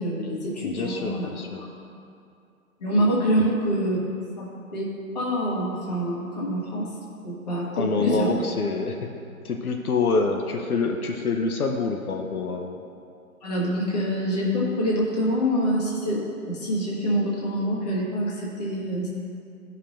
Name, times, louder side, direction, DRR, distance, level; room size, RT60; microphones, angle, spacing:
voice 1, 0.0-1.3 2.8-4.0 4.4-6.9 7.2-8.3 13.4-19.1, equal, 30° left, -5 dB, 1.4 m, -26 dB
voice 2, 0.6-1.6 7.8-9.0 9.4-12.8, left 4 dB, 80° left, 3 dB, 0.8 m, -26 dB
13.0 x 5.5 x 2.5 m, 2.5 s
hypercardioid pair, 165°, 43 cm